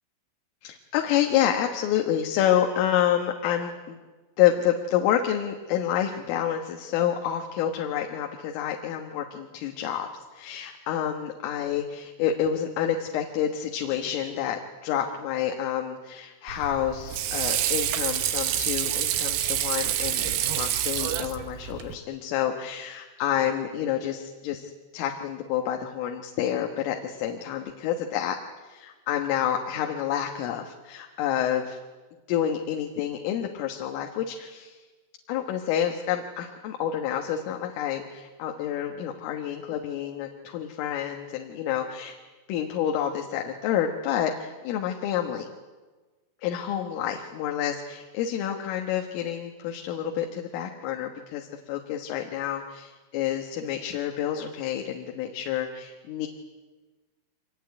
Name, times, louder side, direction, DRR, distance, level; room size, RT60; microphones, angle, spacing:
voice 1, 0.6-4.0 4.4-10.1 10.3-28.4 28.6-31.8 32.3-34.8 35.3-42.2 42.5-45.5 46.4-56.3, left 10 dB, 80° left, 3 dB, 4.0 m, -28 dB
Water / Sink (filling or washing), 16.5-21.9, right 11 dB, 70° right, 2.5 m, -27 dB
25.0 x 20.0 x 9.6 m, 1.3 s
omnidirectional pair, 5.8 m